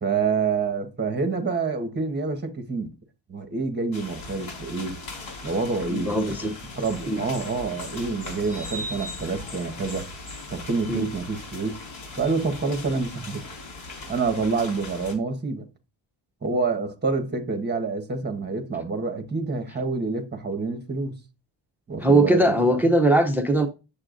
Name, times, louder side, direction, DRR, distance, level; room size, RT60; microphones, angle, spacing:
voice 1, 0.0-2.9 3.3-5.0 5.4-6.1 6.4-10.1 10.5-11.8 12.2-13.4 14.1-15.6 16.4-21.1 21.9-22.9, right 4 dB, 20° right, 1.2 m, -27 dB
sound 1, 3.9-15.1, left 2 dB, 85° left, 3.6 m, -39 dB
voice 2, 5.9-6.5 7.1-7.2 10.9-11.0 22.0-23.7, right 1 dB, 5° right, 0.6 m, -20 dB
8.6 x 7.3 x 2.5 m
wide cardioid pair, 155°, 46 cm